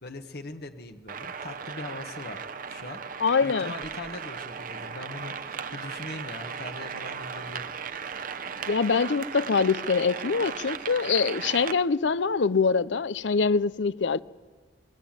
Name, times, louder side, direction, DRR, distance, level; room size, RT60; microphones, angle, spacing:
voice 1, 0.0-2.4 2.7-3.0 3.4-7.6, left 2 dB, 60° left, 1.5 m, -40 dB
sound 1, 1.1-11.7, right 6 dB, 50° right, 0.9 m, -37 dB
voice 2, 3.2-3.7 8.7-14.2, left 5 dB, 80° left, 0.6 m, -24 dB
23.0 x 20.0 x 9.1 m
head